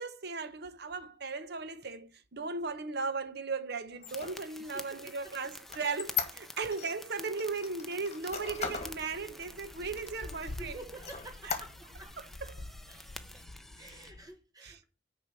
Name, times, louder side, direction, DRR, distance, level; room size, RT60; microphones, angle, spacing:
voice 1, 0.0-10.8 11.4-11.5 12.2-12.6 14.6-14.8, right 4 dB, 65° right, 1.0 m, -37 dB
Squeak, 3.9-6.9 7.4-9.0 9.4-9.5 10.0-10.6 11.0-12.1, left 7 dB, 40° left, 1.5 m, -38 dB
sound 1, 4.1-14.1, left 1 dB, ahead, 0.6 m, -50 dB
voice 2, 4.7-5.3 9.8-9.9 10.6-12.2 12.9-13.0 13.3-13.4 13.8-14.8, right 1 dB, 20° right, 1.2 m, -49 dB
sound 2, 8.5-14.3, left 2 dB, 85° left, 0.8 m, -48 dB
6.5 x 5.0 x 6.8 m
head